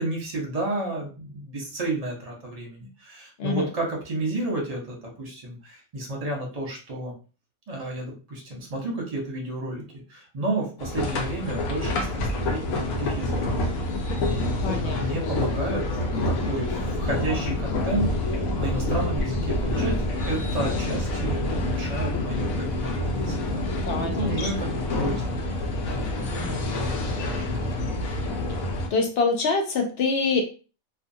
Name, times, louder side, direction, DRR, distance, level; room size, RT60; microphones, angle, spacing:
voice 1, 0.0-7.1 7.7-9.8 10.1-14.0 14.2-15.9 16.3-26.3 26.6-27.7, right 1 dB, 35° right, -1 dB, 0.7 m, -32 dB
sound 1, 10.8-28.9, left 1 dB, 80° left, 1.0 m, -27 dB
voice 2, 14.6-15.3 23.9-24.4 26.3-26.6 28.9-30.4, left 4 dB, 60° left, 3 dB, 0.7 m, -26 dB
2.5 x 2.4 x 2.6 m, 0.35 s
omnidirectional pair, 1.4 m